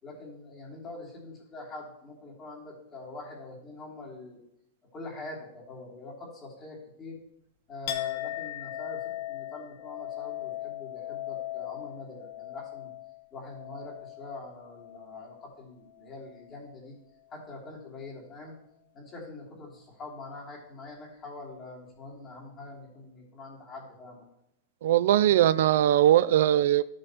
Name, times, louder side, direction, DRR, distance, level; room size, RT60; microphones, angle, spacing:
voice 1, 0.0-4.4 4.9-7.2 7.7-12.9 13.3-17.0 17.3-18.5 18.9-24.3, left 2 dB, 20° left, -4 dB, 2.8 m, -44 dB
Chink clink, 7.9-15.6 15.9-16.6, left 14 dB, 50° left, 0.9 m, -38 dB
voice 2, 24.8-26.8, right 12 dB, 65° right, 17 dB, 0.4 m, -21 dB
13.5 x 6.4 x 3.0 m, 0.79 s
supercardioid pair, 165°, 0 cm